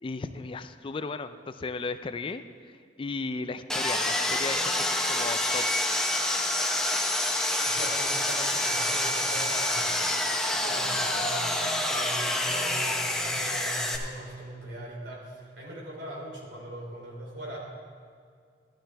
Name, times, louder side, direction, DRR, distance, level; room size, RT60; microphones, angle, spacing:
voice 1, 0.0-5.7, left 3 dB, 30° left, 11 dB, 0.3 m, -35 dB
Sawing, 3.7-14.0, left 1 dB, 5° left, 0.8 m, -27 dB
voice 2, 7.6-10.1 10.4-11.5 11.8-17.6, right 1 dB, 75° right, -3 dB, 3.2 m, -41 dB
13.0 x 13.0 x 3.4 m, 2.2 s
head